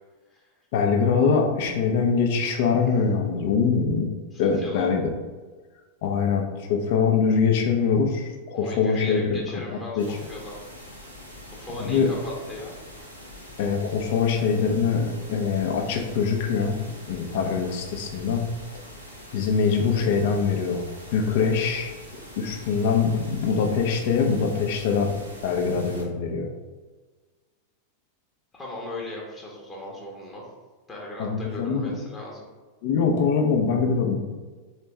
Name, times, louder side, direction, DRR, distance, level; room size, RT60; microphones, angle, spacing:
voice 1, 0.7-4.1 4.4-5.0 6.0-9.4 10.0-10.1 11.8-12.1 13.6-16.8 17.1-18.4 19.3-20.8 21.1-21.9 22.4-25.1 25.4-26.5 31.2-31.9 32.8-34.2, left 5 dB, 50° left, 3 dB, 0.7 m, -23 dB
voice 2, 4.3-4.9 8.5-10.6 11.5-12.7 28.5-30.5 30.9-32.5, left 1 dB, 20° left, -4 dB, 1.0 m, -37 dB
sound 1, 10.0-26.0, equal, 90° right, 1.1 m, -44 dB
4.3 x 3.3 x 3.2 m, 1.4 s
figure-of-eight pair, 90°, 0 cm